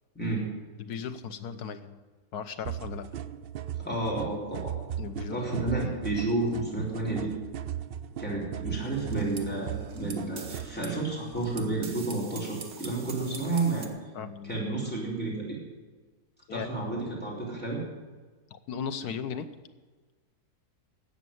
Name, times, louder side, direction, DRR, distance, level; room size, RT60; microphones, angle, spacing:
voice 1, 0.1-0.5 3.8-4.7 5.3-7.3 8.2-13.9 14.4-15.6 16.5-17.8, right 2 dB, 5° left, -5 dB, 4.3 m, -31 dB
voice 2, 0.8-2.0 2.3-3.1 5.0-5.4 14.1-14.5 16.5-16.7 18.5-19.5, left 7 dB, 90° left, 9 dB, 1.4 m, -36 dB
sound 1, 2.7-10.7, right 10 dB, 85° right, 0.5 m, -38 dB
sound 2, 8.8-13.9, right 4 dB, 50° right, 1.5 m, -45 dB
13.0 x 8.1 x 9.2 m, 1.3 s
omnidirectional pair, 1.6 m